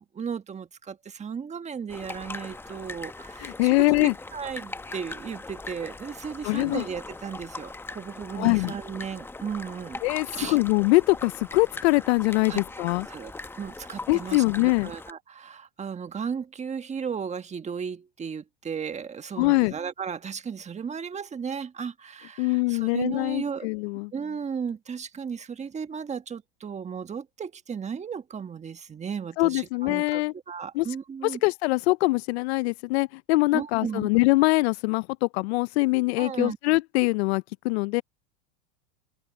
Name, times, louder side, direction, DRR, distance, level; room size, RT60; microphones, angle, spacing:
voice 1, 0.1-10.0 10.3-10.6 12.5-12.6 13.1-13.3 13.6-23.7 24.1-31.4 33.5-34.1 36.2-36.6, right 6 dB, 20° right, 1.5 m, -35 dB
sound 1, 1.9-15.1, left 2 dB, 5° left, 0.8 m, -41 dB
voice 2, 3.4-4.1 6.4-6.8 8.4-8.7 10.0-13.1 14.1-14.9 19.4-19.7 22.4-24.1 29.4-30.3 30.7-30.9 31.4-38.0, left 22 dB, 70° left, 0.6 m, -23 dB
open air
supercardioid pair, 115°, 33 cm